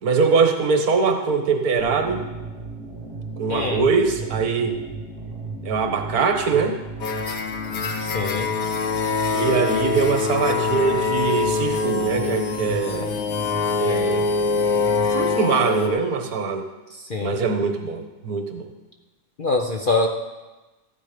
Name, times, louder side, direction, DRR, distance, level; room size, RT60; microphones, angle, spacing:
voice 1, 0.0-2.2 3.4-4.8 5.6-6.7 9.3-13.2 13.8-14.3 14.7-14.8 15.1-16.6 17.2-18.7, right 5 dB, 70° right, 6 dB, 1.6 m, -22 dB
sound 1, 1.8-15.3, right 3 dB, 35° right, 1.9 m, -35 dB
voice 2, 3.5-3.8 8.0-8.5 17.1-17.4 19.4-20.1, left 3 dB, 45° left, 2 dB, 0.7 m, -24 dB
sound 2, 7.0-15.9, left 5 dB, 70° left, 1.5 m, -24 dB
13.5 x 9.3 x 5.1 m, 1.2 s
omnidirectional pair, 1.7 m